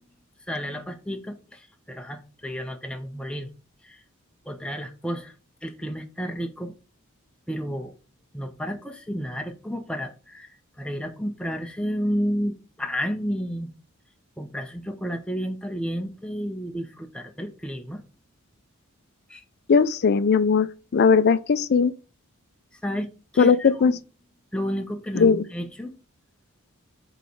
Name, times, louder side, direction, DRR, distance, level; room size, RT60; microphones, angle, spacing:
voice 1, 0.5-3.5 3.8-4.0 4.5-5.3 5.6-6.7 7.5-7.9 8.3-10.5 10.8-13.7 14.4-18.0 19.3-19.4 22.8-24.0 24.5-25.9, equal, 5° left, 0.6 m, -31 dB
voice 2, 19.7-21.9 23.4-23.9 25.2-25.4, left 5 dB, 50° left, 0.4 m, -19 dB
4.8 x 4.0 x 5.2 m
head